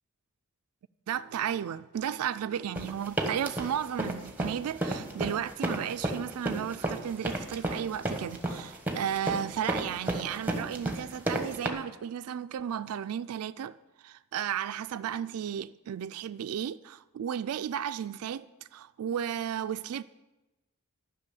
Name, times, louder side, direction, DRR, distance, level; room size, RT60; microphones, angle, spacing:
voice 1, 1.1-20.0, right 9 dB, 85° right, 0.3 m, -34 dB
sound 1, 2.8-11.7, right 1 dB, 10° right, 1.2 m, -32 dB
12.0 x 6.1 x 9.2 m
head